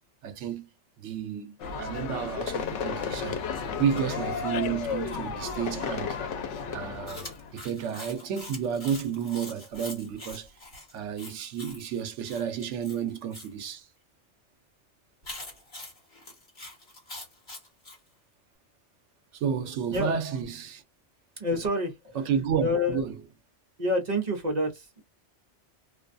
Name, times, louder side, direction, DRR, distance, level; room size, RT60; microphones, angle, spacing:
voice 1, 0.2-0.7 1.0-3.4 3.8-6.2 6.7-7.2 7.5-10.5 10.9-13.9 19.3-20.8 22.2-23.2, right 7 dB, 80° right, 1.0 m, -31 dB
sound 1, 1.6-7.7, left 6 dB, 80° left, 0.9 m, -33 dB
Chewing mastication, 7.1-13.5 15.2-18.0, left 2 dB, 40° left, 1.4 m, -44 dB
voice 2, 21.4-22.2 22.6-23.0 23.8-25.0, left 1 dB, 40° right, 0.9 m, -28 dB
2.5 x 2.2 x 2.5 m
omnidirectional pair, 1.2 m